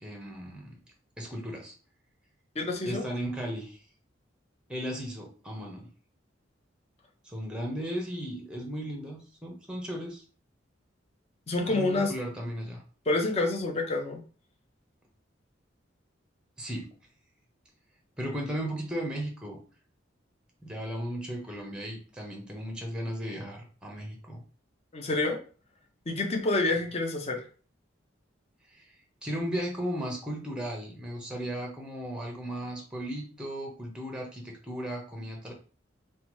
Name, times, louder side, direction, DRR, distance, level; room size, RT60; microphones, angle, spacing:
voice 1, 0.0-0.8 1.2-1.7 2.9-3.8 4.7-5.9 7.2-10.2 11.7-12.8 16.6-16.9 18.2-19.6 20.6-24.4 28.7-35.5, equal, 5° right, 0 dB, 0.6 m, -36 dB
voice 2, 2.6-3.0 11.5-12.1 13.1-14.2 24.9-25.4 26.1-27.4, left 2 dB, 35° left, 3 dB, 0.5 m, -28 dB
2.9 x 2.1 x 3.0 m, 0.39 s
head